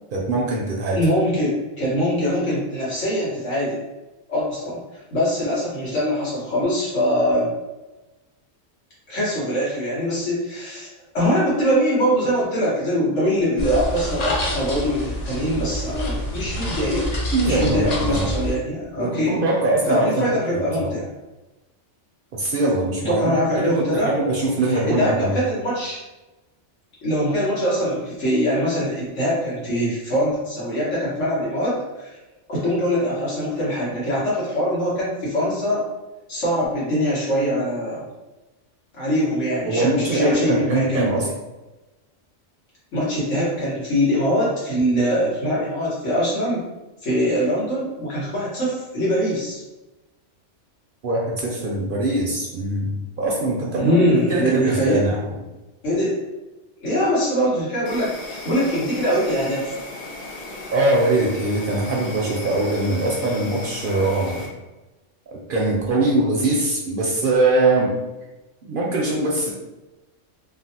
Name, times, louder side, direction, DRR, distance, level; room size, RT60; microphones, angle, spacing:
voice 1, 0.1-1.0 17.3-18.2 19.0-20.9 22.3-25.3 39.6-41.3 51.0-54.0 54.3-55.2 60.7-64.5 65.3-68.0 68.6-69.5, right 2 dB, 60° right, -2 dB, 0.6 m, -22 dB
voice 2, 0.9-3.8 4.3-4.8 5.1-7.5 9.1-17.1 17.4-19.4 19.8-21.1 23.0-24.1 24.6-26.0 27.0-32.2 32.5-35.8 36.3-38.1 38.9-41.1 42.9-46.6 47.0-49.6 53.7-55.1 55.8-56.2 56.8-59.7, equal, 85° left, -8 dB, 1.6 m, -22 dB
sound 1, 13.6-18.6, equal, 45° left, 0.5 m, -27 dB
Insect, 57.9-64.5, left 2 dB, 70° left, 0.9 m, -36 dB
3.1 x 2.2 x 2.7 m, 1.1 s
omnidirectional pair, 1.2 m